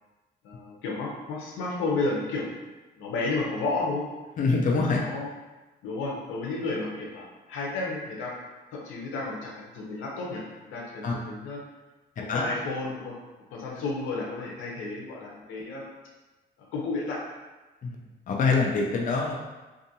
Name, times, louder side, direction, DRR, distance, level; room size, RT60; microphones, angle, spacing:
voice 1, 0.4-2.5 3.0-4.1 4.7-5.3 5.8-8.3 8.7-11.6 12.2-13.1 13.5-15.8 16.7-17.2, left 3 dB, 90° left, -3 dB, 0.7 m, -32 dB
voice 2, 4.4-5.0 11.0-11.1 12.3-12.4 17.8-18.0 18.3-19.3, left 4 dB, 40° left, 0 dB, 0.5 m, -24 dB
2.6 x 2.4 x 2.7 m, 1.2 s
cardioid pair, 90°, 20 cm